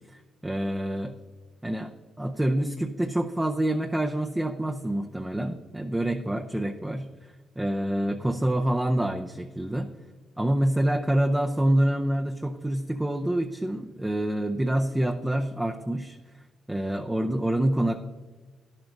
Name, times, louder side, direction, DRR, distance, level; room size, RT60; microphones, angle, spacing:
voice 1, 0.1-1.1 1.6-7.1 7.6-9.9 10.4-16.2 16.7-18.0, right 1 dB, 10° right, 4 dB, 0.6 m, -27 dB
11.5 x 11.0 x 2.6 m, 1.3 s
cardioid pair, 90°, 0 cm